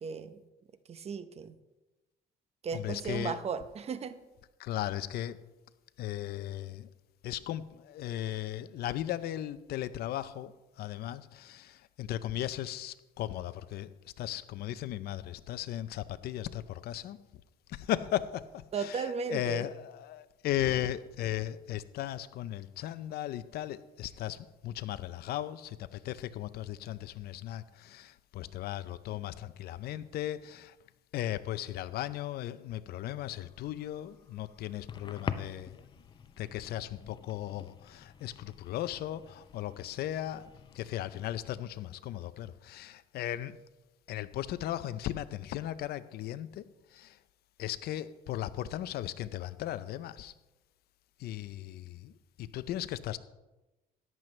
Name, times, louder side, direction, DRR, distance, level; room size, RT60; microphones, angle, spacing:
voice 1, 0.0-0.4 0.9-1.6 2.6-4.2 18.7-19.6, right 5 dB, 40° right, 0.8 m, -35 dB
voice 2, 2.7-3.4 4.6-5.4 6.0-6.9 7.2-17.2 17.7-30.8 31.1-35.8 36.4-40.5 40.7-43.6 44.1-46.6 46.9-47.2 47.6-50.3 51.2-52.1 52.4-53.2, left 12 dB, 70° left, 0.6 m, -37 dB
sound 1, 33.4-41.5, left 6 dB, 25° left, 0.6 m, -45 dB
13.5 x 10.5 x 3.3 m
cardioid pair, 110°, 17 cm